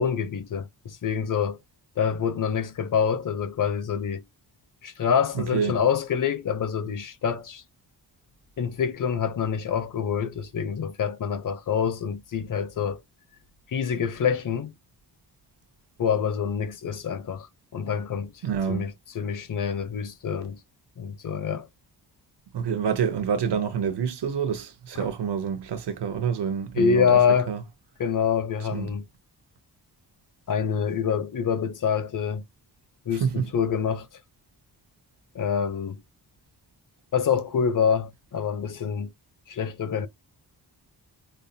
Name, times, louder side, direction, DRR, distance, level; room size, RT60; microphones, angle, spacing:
voice 1, 0.0-1.6 2.0-4.2 4.8-7.6 8.6-13.0 13.7-14.7 16.0-18.3 18.7-20.6 21.0-21.7 25.0-25.1 26.7-27.5 28.0-29.1 30.5-32.4 33.1-34.1 35.3-36.0 37.1-39.1 39.5-40.1, left 7 dB, 50° left, 0.6 m, -26 dB
voice 2, 5.3-5.8 18.4-18.9 22.5-27.2 27.5-27.6 28.7-28.9 33.2-33.5, right 7 dB, 70° right, 0.8 m, -27 dB
5.2 x 2.0 x 2.7 m
wide cardioid pair, 155°, 42 cm